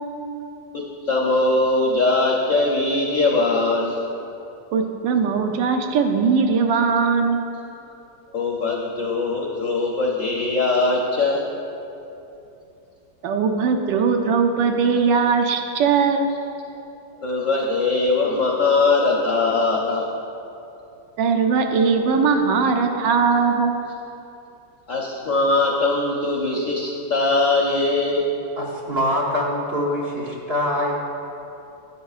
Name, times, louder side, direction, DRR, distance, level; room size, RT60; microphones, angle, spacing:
voice 1, 0.7-4.0 8.3-11.4 17.2-20.0 24.9-28.3, left 3 dB, 60° left, -2 dB, 0.8 m, -21 dB
voice 2, 4.7-7.4 13.2-16.3 21.2-23.8, right 5 dB, 75° right, 4 dB, 1.2 m, -20 dB
voice 3, 28.6-30.9, left 1 dB, 45° right, -2 dB, 0.8 m, -24 dB
11.0 x 9.3 x 2.4 m, 2.8 s
omnidirectional pair, 2.0 m